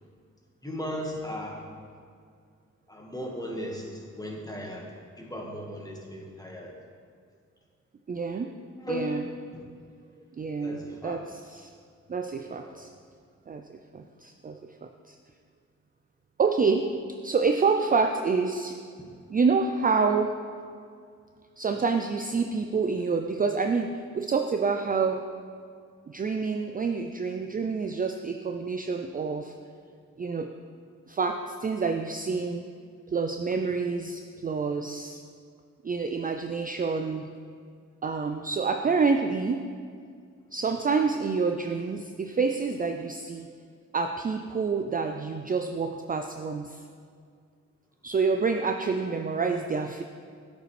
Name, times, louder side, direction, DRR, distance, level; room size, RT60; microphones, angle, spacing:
voice 1, 0.6-1.7 2.9-6.7 8.8-9.1 9.5-9.6 10.6-11.2 12.6-12.8, left 1 dB, 10° left, -1 dB, 1.6 m, -36 dB
voice 2, 8.1-8.5 8.9-9.2 10.4-11.7 12.1-12.9 13.5-15.2 16.4-16.9 17.2-18.8 19.3-20.3 21.6-25.2 26.1-29.5 30.2-30.5 31.1-32.6 33.1-35.2 35.8-37.3 38.0-39.6 40.5-43.5 43.9-46.8 48.0-50.0, right 4 dB, 30° right, 5 dB, 0.4 m, -27 dB
8.9 x 5.2 x 3.3 m, 2.1 s
supercardioid pair, 45°, 31 cm